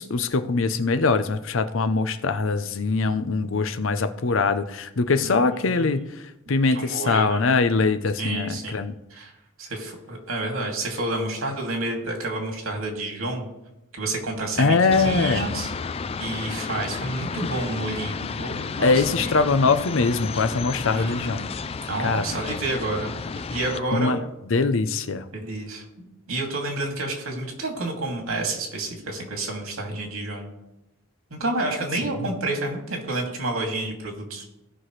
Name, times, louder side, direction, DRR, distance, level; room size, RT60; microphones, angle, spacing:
voice 1, 0.0-6.1 6.5-8.9 14.6-15.4 18.8-21.5 22.0-22.2 23.9-24.2 24.5-25.3, left 4 dB, 65° left, 11 dB, 0.6 m, -22 dB
voice 2, 5.2-5.9 6.7-7.5 8.2-8.8 9.1-9.3 9.6-13.5 13.9-15.7 16.2-19.3 20.8-21.3 21.8-24.2 25.3-30.5 31.3-34.4, right 2 dB, 85° right, 1 dB, 2.5 m, -29 dB
sound 1, 14.9-23.8, left 5 dB, 30° left, 0.3 m, -32 dB
17.0 x 5.9 x 3.2 m, 0.91 s
head